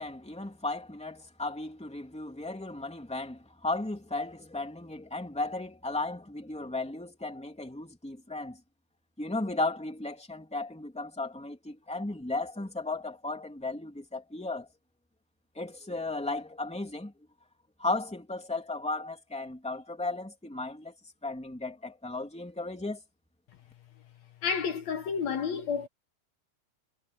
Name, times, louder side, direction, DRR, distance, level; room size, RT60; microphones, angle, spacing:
voice 1, 0.0-8.6 9.2-14.7 15.6-17.1 17.8-20.9 21.2-23.0, left 2 dB, ahead, 2.9 m, -35 dB
voice 2, 24.4-25.9, left 6 dB, 65° left, 2.4 m, -30 dB
omnidirectional pair, 3.5 m